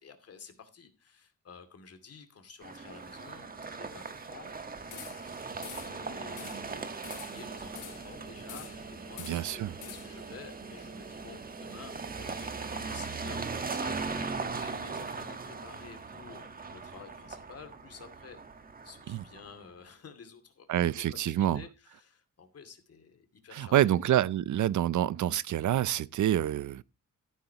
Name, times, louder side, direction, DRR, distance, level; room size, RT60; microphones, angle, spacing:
voice 1, 0.0-24.1, left 6 dB, 50° left, 2.6 m, -51 dB
sound 1, 2.6-19.6, right 4 dB, 30° right, 1.4 m, -39 dB
sound 2, 4.9-5.3 5.6-6.0 6.4-6.7 7.0-8.1 8.5-8.9 9.2-10.3, left 9 dB, 70° left, 1.2 m, -47 dB
voice 2, 9.3-9.7 19.1-19.2 20.7-21.6 23.5-26.8, right 12 dB, 65° right, 0.5 m, -27 dB
14.0 x 11.5 x 2.9 m
wide cardioid pair, 170°, 32 cm